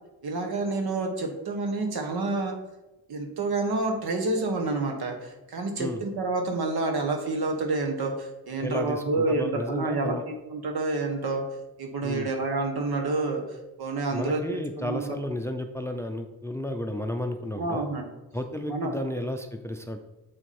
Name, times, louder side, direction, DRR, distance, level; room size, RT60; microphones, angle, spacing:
voice 1, 0.2-2.6 3.1-11.4 11.8-13.4 13.8-15.1 17.5-18.1 18.7-18.9, right 3 dB, 60° right, 3 dB, 1.5 m, -28 dB
voice 2, 8.6-10.2 12.0-12.3 14.1-17.9 18.3-20.0, left 1 dB, 5° left, 6 dB, 0.6 m, -32 dB
7.3 x 4.5 x 4.3 m, 1.0 s
supercardioid pair, 60°, 42 cm